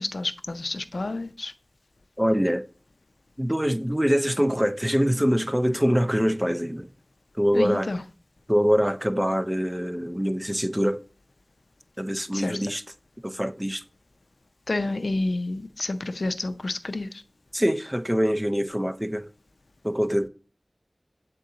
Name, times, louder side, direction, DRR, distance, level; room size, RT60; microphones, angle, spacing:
voice 1, 0.0-1.5 7.5-8.0 12.3-12.6 14.7-17.2, left 2 dB, 80° left, 0.5 m, -29 dB
voice 2, 2.2-2.6 3.4-6.9 7.3-7.9 8.5-11.0 12.0-12.8 13.2-13.8 17.5-19.3 19.8-20.3, equal, 10° right, 0.5 m, -24 dB
7.7 x 3.7 x 3.8 m
wide cardioid pair, 45°, 0 cm